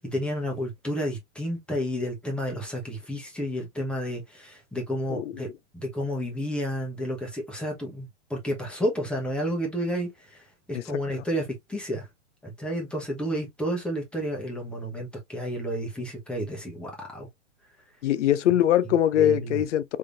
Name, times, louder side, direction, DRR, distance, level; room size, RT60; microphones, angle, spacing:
voice 1, 0.0-5.5 5.7-10.4 10.7-12.1 12.4-17.3 19.2-19.6, equal, 5° left, 1.1 m, -31 dB
voice 2, 5.1-5.4 10.7-10.8 11.1-11.2 18.0-19.8, left 11 dB, 80° left, 0.7 m, -22 dB
3.6 x 3.2 x 2.6 m
hypercardioid pair, 145°, 35 cm